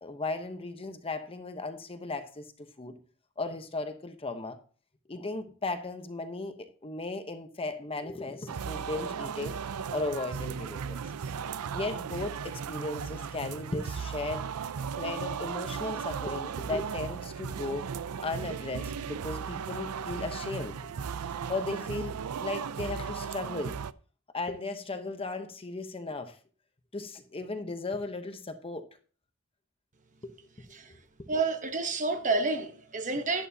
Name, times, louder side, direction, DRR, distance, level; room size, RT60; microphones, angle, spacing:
voice 1, 0.0-2.5 2.8-2.9 3.4-4.6 5.1-9.6 9.9-11.0 11.7-14.5 15.0-17.9 18.2-20.9 21.5-23.8 24.3-26.4 26.9-28.9 30.2-30.3 30.7-31.3, left 2 dB, 25° left, 0.9 m, -36 dB
sound 1, 8.5-23.9, right 6 dB, 85° right, 0.5 m, -36 dB
voice 2, 31.3-33.5, right 3 dB, 35° right, 1.1 m, -29 dB
11.0 x 11.0 x 2.8 m
head